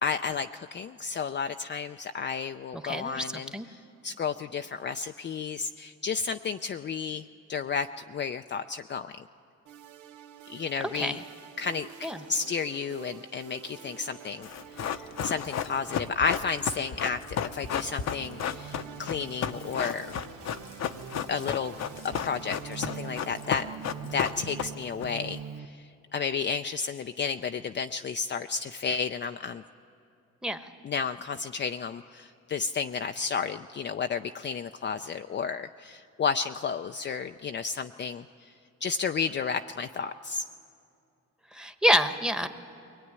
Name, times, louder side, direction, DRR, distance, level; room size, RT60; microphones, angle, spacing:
voice 1, 0.0-9.1 10.5-11.2 11.6-14.5 14.8-20.1 21.3-21.8 22.2-23.7 24.1-29.6 30.8-38.5 38.8-40.4, left 5 dB, 35° left, 7 dB, 0.5 m, -32 dB
voice 2, 2.8-3.7 10.9-11.2 12.0-12.2 30.4-30.7 41.5-42.5, equal, 5° right, 9 dB, 1.1 m, -27 dB
sound 1, 9.7-25.7, right 8 dB, 85° right, 0.9 m, -45 dB
Run, 14.4-25.0 25.3-25.4, left 8 dB, 60° left, 0.9 m, -33 dB
22.5 x 19.0 x 9.6 m, 2.5 s
cardioid pair, 90°, 30 cm